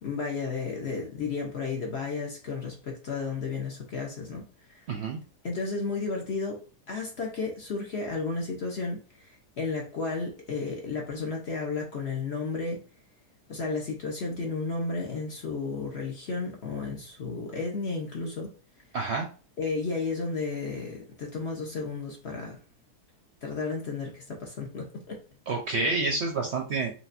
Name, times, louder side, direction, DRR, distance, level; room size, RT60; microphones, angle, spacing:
voice 1, 0.0-4.4 4.7-4.8 5.4-6.6 6.9-12.8 13.5-18.5 19.6-22.6 23.4-25.2, left 4 dB, 50° left, 0.9 m, -33 dB
voice 2, 4.9-5.2 18.9-19.3 25.5-26.9, right 3 dB, 60° right, 0.7 m, -28 dB
5.1 x 2.9 x 2.6 m
omnidirectional pair, 1.7 m